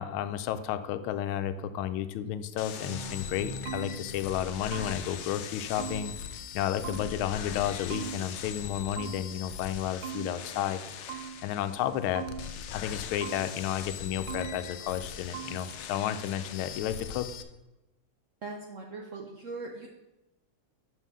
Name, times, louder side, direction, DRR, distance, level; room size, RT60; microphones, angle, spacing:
voice 1, 0.0-6.1 6.5-17.3, left 10 dB, 90° left, 11 dB, 1.4 m, -32 dB
sound 1, 2.6-17.4, left 8 dB, 70° left, 1.2 m, -41 dB
sound 2, 2.7-6.2, equal, 45° right, 1.1 m, -45 dB
sound 3, 3.1-5.3 5.8-7.4 7.9-9.6 10.0-11.7 12.1-13.8 14.3-15.1 15.3-15.9, right 10 dB, 80° right, 1.4 m, -43 dB
voice 2, 18.4-19.9, right 3 dB, 65° right, 1 dB, 0.8 m, -40 dB
5.9 x 5.5 x 6.1 m, 0.98 s
omnidirectional pair, 2.2 m